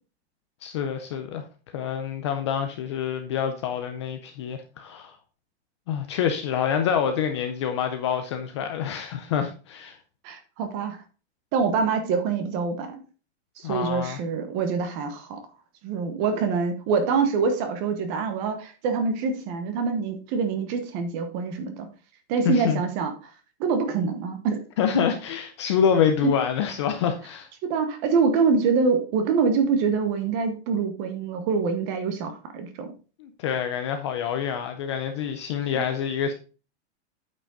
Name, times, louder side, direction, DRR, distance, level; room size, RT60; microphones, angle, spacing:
voice 1, 0.6-1.4 1.7-5.2 5.9-10.0 13.6-14.2 22.4-22.8 24.8-27.5 33.2-36.3, left 8 dB, 25° left, 0.5 m, -26 dB
voice 2, 10.2-11.0 11.5-13.0 13.6-15.4 15.8-21.9 22.3-23.3 23.6-24.6 24.9-25.0 27.6-32.9 35.7-35.8, right 5 dB, 25° right, 1.1 m, -25 dB
8.7 x 5.2 x 3.7 m
supercardioid pair, 175°, 34 cm